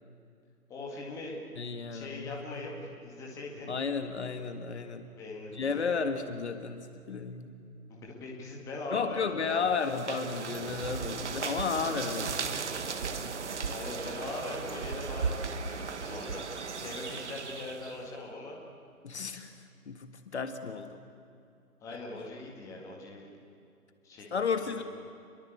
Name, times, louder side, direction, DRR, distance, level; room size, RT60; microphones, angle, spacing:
voice 1, 0.7-1.4 1.9-2.7 3.0-3.7 5.1-6.0 7.9-9.6 13.7-16.4 16.8-18.6 21.8-23.3 24.0-24.3 24.6-24.8, left 2 dB, 5° left, -2 dB, 2.1 m, -41 dB
voice 2, 1.6-2.7 3.7-5.1 5.5-7.6 8.9-12.6 13.2-13.4 19.0-19.5 19.9-21.0 24.3-24.8, left 5 dB, 45° left, 8 dB, 1.8 m, -33 dB
sound 1, 9.7-18.1, right 5 dB, 50° right, 1.9 m, -36 dB
29.0 x 22.5 x 8.5 m, 2.6 s
figure-of-eight pair, 160°, 45 cm